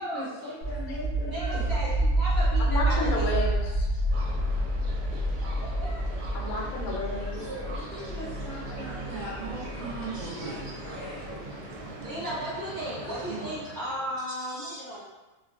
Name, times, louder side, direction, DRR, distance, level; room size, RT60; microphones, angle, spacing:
voice 1, 0.0-1.7 7.9-11.3 12.9-13.5, right 2 dB, 55° right, -10 dB, 0.5 m, -39 dB
sound 1, 0.6-11.3, right 1 dB, 65° left, 0.7 m, -29 dB
voice 2, 1.3-3.3 4.0-4.2 5.6-6.0 12.0-15.0, equal, 35° right, -12 dB, 1.0 m, -35 dB
voice 3, 2.6-3.9 6.3-7.3 13.4-13.5 14.6-14.7, left 3 dB, 80° left, -2 dB, 1.0 m, -32 dB
sound 2, 4.1-14.2, right 2 dB, 70° right, 0.9 m, -41 dB
voice 4, 7.2-7.9 9.9-12.1 14.3-15.0, right 1 dB, 30° left, -12 dB, 0.4 m, -43 dB
2.5 x 2.1 x 2.5 m, 1.1 s
omnidirectional pair, 1.5 m